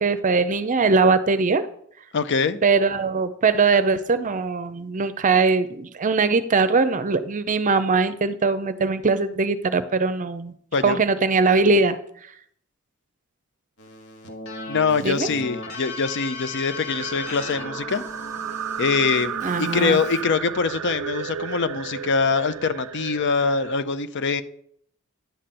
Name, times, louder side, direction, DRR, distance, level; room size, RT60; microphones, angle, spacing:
voice 1, 0.0-1.7 2.6-10.5 10.8-12.0 15.0-15.3 19.4-20.0, right 4 dB, 35° right, 12 dB, 0.6 m, -21 dB
voice 2, 2.1-2.6 10.7-11.0 14.7-18.0 18.8-24.4, left 5 dB, 55° left, 13 dB, 0.6 m, -23 dB
Keyboard (musical), 13.8-20.2, left 3 dB, 90° left, 1.7 m, -37 dB
sound 1, 16.9-23.8, right 8 dB, 85° right, 0.4 m, -33 dB
10.5 x 4.3 x 7.6 m, 0.67 s
head